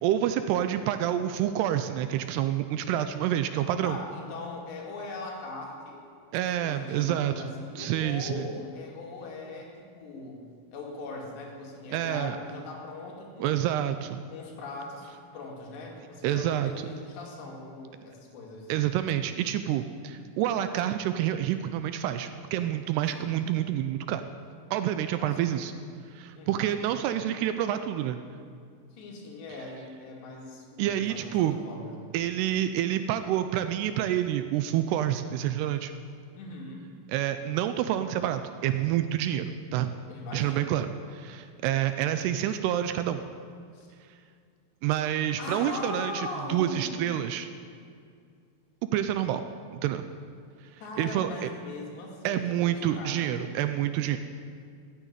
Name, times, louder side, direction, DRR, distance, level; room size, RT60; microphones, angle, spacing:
voice 1, 0.0-4.0 6.3-7.4 7.8-8.5 11.9-12.4 13.4-14.2 16.2-16.7 18.7-24.2 24.7-25.7 26.1-28.2 30.8-31.6 32.1-35.9 37.1-39.9 40.3-43.2 44.8-47.5 48.9-49.4 49.7-50.1 51.0-51.5 52.2-54.2, right 11 dB, 80° right, 10 dB, 2.5 m, -28 dB
voice 2, 3.8-6.1 6.6-10.4 10.7-13.6 14.3-18.7 23.1-23.3 25.1-25.6 26.4-26.7 28.9-32.1 36.3-36.9 40.1-40.7 43.7-43.9 45.4-47.1 50.8-53.4, left 3 dB, 75° left, 0 dB, 4.4 m, -40 dB
14.0 x 9.1 x 9.9 m, 2.3 s
omnidirectional pair, 5.0 m